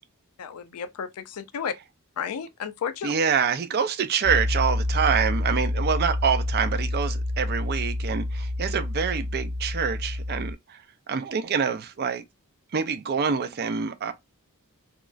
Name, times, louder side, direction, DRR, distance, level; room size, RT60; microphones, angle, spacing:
voice 1, 0.4-1.7 2.2-3.1, left 7 dB, 75° left, 0.4 m, -32 dB
voice 2, 3.0-10.8 11.1-12.2 12.7-14.1, right 6 dB, 45° right, 0.4 m, -26 dB
Piano, 4.2-10.5, left 1 dB, 5° left, 0.7 m, -28 dB
3.0 x 2.4 x 2.4 m
head